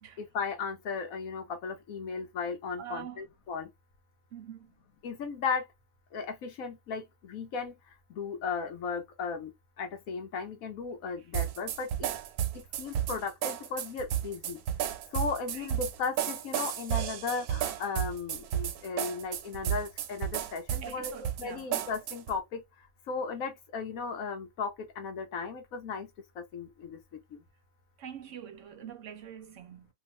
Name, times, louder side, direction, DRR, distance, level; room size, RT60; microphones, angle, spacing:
voice 1, 0.2-3.7 5.0-5.7 6.1-7.7 8.1-9.5 9.8-12.1 12.8-14.6 15.1-21.1 21.4-22.6 23.1-26.1 26.4-27.2, left 5 dB, 70° left, 1.2 m, -36 dB
voice 2, 2.8-3.2 4.3-4.7 11.2-11.3 15.5-15.7 20.8-21.7 28.0-29.9, right 9 dB, 65° right, 0.8 m, -44 dB
sound 1, 11.3-22.4, right 10 dB, 85° right, 1.1 m, -33 dB
2.8 x 2.4 x 3.0 m
omnidirectional pair, 1.5 m